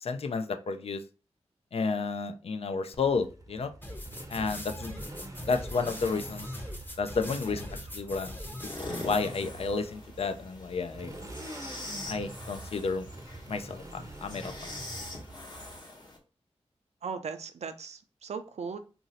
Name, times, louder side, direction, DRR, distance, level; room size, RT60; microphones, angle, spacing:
voice 1, 0.0-1.0 1.7-3.7 4.3-5.0 5.5-6.5 7.0-8.3 8.8-11.2 12.1-13.1 13.5-14.7, left 4 dB, 60° left, 7 dB, 0.4 m, -31 dB
Motorcycle, 2.9-15.8, right 2 dB, 30° right, 0.6 m, -45 dB
sound 1, 3.8-9.3, left 1 dB, 15° left, 0.7 m, -41 dB
sound 2, 8.6-16.2, left 2 dB, 40° left, 1.0 m, -43 dB
voice 2, 17.0-18.8, right 5 dB, 75° right, 9 dB, 0.4 m, -38 dB
2.6 x 2.0 x 3.8 m, 0.34 s
cardioid pair, 40°, 11 cm